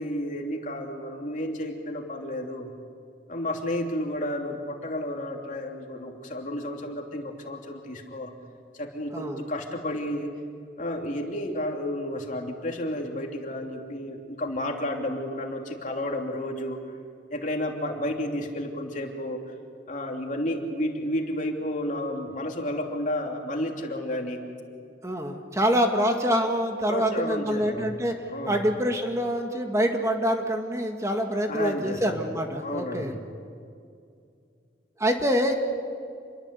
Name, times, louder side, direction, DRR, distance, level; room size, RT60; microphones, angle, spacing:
voice 1, 0.0-2.7 3.3-8.3 8.7-10.3 10.8-16.8 17.3-19.4 19.9-24.4 26.9-28.0 28.3-28.6 31.5-32.3 32.6-33.2, left 1 dB, 45° left, 2 dB, 2.9 m, -31 dB
voice 2, 25.0-28.1 28.5-33.1 35.0-35.5, equal, 15° right, 3 dB, 1.9 m, -25 dB
28.0 x 22.0 x 8.3 m, 2.4 s
head